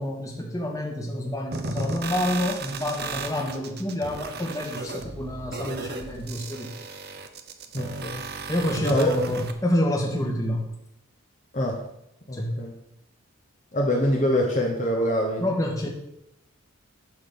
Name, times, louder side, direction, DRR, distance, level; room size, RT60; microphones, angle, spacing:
voice 1, 0.0-6.7 8.5-10.6 12.3-12.5 15.4-15.9, left 1 dB, 15° left, 0 dB, 1.4 m, -28 dB
sound 1, 1.5-9.5, right 3 dB, 45° right, 0.8 m, -35 dB
voice 2, 7.7-8.2 8.8-9.1 11.5-11.8 12.3-12.8 13.7-15.5, equal, 35° left, -1 dB, 1.1 m, -24 dB
10.5 x 3.9 x 6.8 m, 0.82 s
head